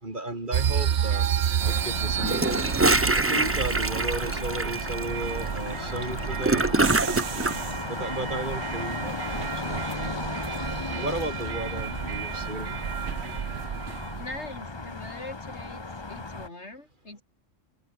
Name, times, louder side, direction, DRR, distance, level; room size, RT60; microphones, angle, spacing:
voice 1, 0.0-1.3 1.6-2.6 3.1-7.2 7.9-10.4 10.9-12.8, right 2 dB, 40° right, 3.8 m, -34 dB
sound 1, 0.5-14.5, right 9 dB, 60° right, 1.0 m, -31 dB
sound 2, 1.6-16.5, left 3 dB, 20° left, 1.1 m, -36 dB
Gurgling / Toilet flush, 2.2-7.6, right 2 dB, 15° right, 0.6 m, -25 dB
voice 2, 14.2-15.8 16.1-17.2, left 2 dB, 60° left, 5.1 m, -41 dB
omnidirectional pair, 1.3 m